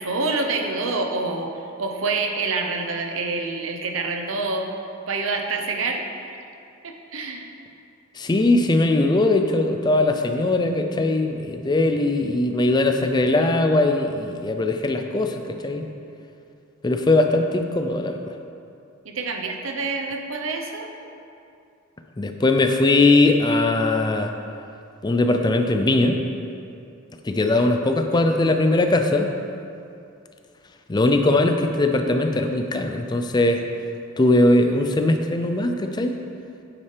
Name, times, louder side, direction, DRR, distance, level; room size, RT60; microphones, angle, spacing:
voice 1, 0.0-1.5 1.8-4.7 5.1-6.4 6.8-7.5 19.0-20.9, right 3 dB, 75° right, 3 dB, 0.9 m, -27 dB
voice 2, 8.2-15.8 16.8-18.2 22.2-24.3 25.0-26.2 27.2-29.3 30.9-33.6 34.2-36.2, left 2 dB, 20° left, 5 dB, 0.4 m, -20 dB
8.7 x 8.6 x 3.4 m, 2.5 s
head